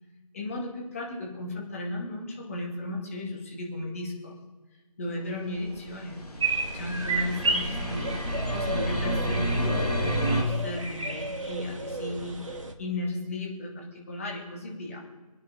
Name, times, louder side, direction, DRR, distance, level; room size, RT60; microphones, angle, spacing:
voice 1, 0.3-4.3 5.0-6.2 6.7-8.1 8.5-10.0 10.2-12.4 12.8-15.0, left 1 dB, 20° left, -1 dB, 2.2 m, -35 dB
sound 1, 5.7-10.4, equal, 75° left, 2.5 m, -29 dB
sound 2, 6.4-12.7, right 3 dB, 55° right, 1.8 m, -32 dB
25.5 x 9.4 x 5.3 m, 1.2 s
figure-of-eight pair, 160°, 20 cm